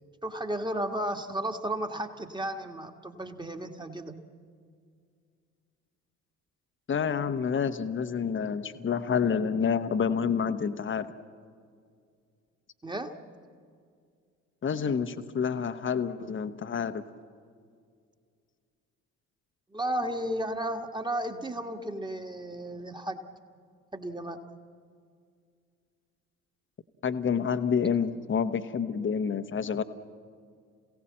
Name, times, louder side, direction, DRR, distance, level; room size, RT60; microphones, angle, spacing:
voice 1, 0.2-4.2 12.8-13.1 19.7-23.2 23.9-24.4, right 1 dB, 10° right, 6 dB, 1.7 m, -33 dB
voice 2, 6.9-11.1 14.6-17.0 27.0-29.8, left 6 dB, 25° left, 11 dB, 1.1 m, -28 dB
27.5 x 17.0 x 7.6 m, 2.2 s
figure-of-eight pair, 50°, 43 cm